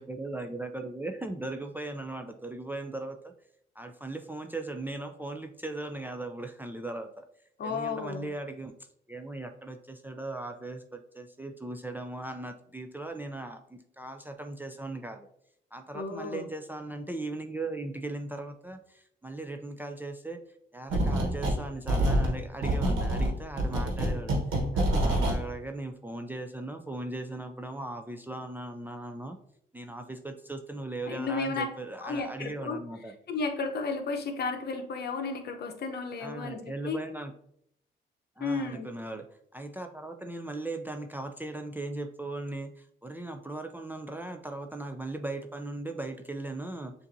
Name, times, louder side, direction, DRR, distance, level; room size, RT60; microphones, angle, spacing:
voice 1, 0.0-3.3 3.8-7.2 7.6-8.7 9.1-15.3 15.7-20.4 20.7-29.4 29.7-33.1 36.2-37.3 38.4-39.3 39.5-46.9, right 2 dB, 10° right, 5 dB, 0.4 m, -38 dB
voice 2, 7.6-8.3 15.9-16.5 31.1-31.7 32.0-32.8 33.3-37.0 38.4-38.9, left 4 dB, 55° left, 4 dB, 0.8 m, -33 dB
sound 1, 20.9-21.6 21.9-25.4, right 1 dB, 85° right, 1.2 m, -26 dB
7.0 x 2.6 x 2.6 m, 0.71 s
cardioid pair, 90°, 20 cm